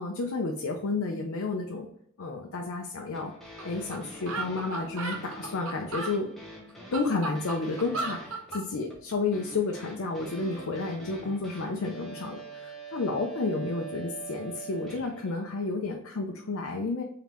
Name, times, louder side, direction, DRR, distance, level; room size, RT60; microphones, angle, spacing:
voice 1, 0.0-1.9 2.2-3.3 3.6-6.3 6.9-17.0, left 3 dB, 65° left, 2 dB, 0.5 m, -31 dB
sound 1, 3.1-15.3, right 3 dB, ahead, 0.9 m, -44 dB
sound 2, 3.6-3.7 3.9-4.0 4.3-6.1 6.7-8.6, right 3 dB, 65° right, 0.8 m, -35 dB
3.7 x 3.6 x 2.9 m, 0.67 s
head